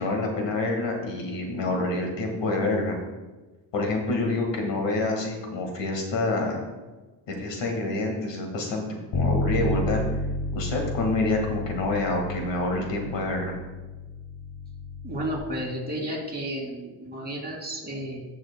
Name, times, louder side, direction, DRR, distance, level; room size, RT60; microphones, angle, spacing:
voice 1, 0.0-3.0 3.7-6.6 7.3-8.8 9.1-10.0 10.5-13.6, left 2 dB, 80° left, 2 dB, 1.8 m, -27 dB
Bass guitar, 9.1-15.4, left 2 dB, 45° left, 1.1 m, -31 dB
voice 2, 15.0-18.2, right 1 dB, 20° right, -3 dB, 2.5 m, -32 dB
16.0 x 6.1 x 2.2 m, 1.2 s
cardioid pair, 130°, 43 cm